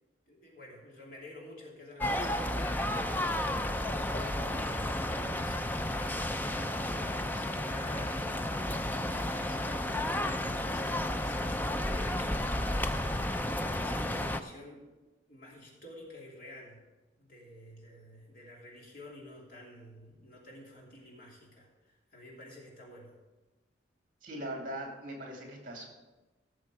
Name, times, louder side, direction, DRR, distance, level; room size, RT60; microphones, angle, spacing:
voice 1, 0.3-10.0 10.5-12.5 13.3-14.9 15.3-16.9 17.2-23.2, left 1 dB, 50° left, -2 dB, 2.9 m, -50 dB
sound 1, 2.0-14.4, left 1 dB, 10° left, 0.4 m, -32 dB
voice 2, 24.2-25.9, right 1 dB, 45° right, 1 dB, 2.5 m, -40 dB
16.0 x 6.7 x 4.8 m, 1.1 s
head